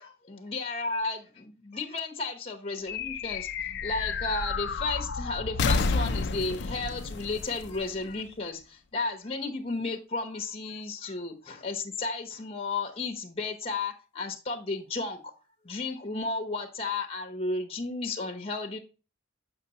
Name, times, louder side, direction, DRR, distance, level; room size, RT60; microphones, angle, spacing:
voice 1, 0.0-3.5 3.8-15.3 15.6-18.8, left 3 dB, 30° left, 0.9 m, -33 dB
sound 1, 2.9-8.6, left 4 dB, 60° left, 0.5 m, -31 dB
6.6 x 5.9 x 2.8 m
head